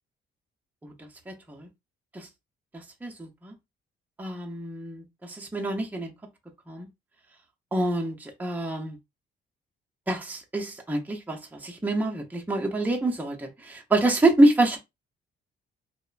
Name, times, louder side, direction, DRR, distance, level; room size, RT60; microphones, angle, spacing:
voice 1, 1.3-1.7 2.1-2.3 3.0-3.5 4.2-6.1 6.7-6.9 7.7-9.0 10.1-14.8, right 1 dB, 10° right, 0.7 m, -26 dB
2.8 x 2.1 x 2.4 m
cardioid pair, 90°, 20 cm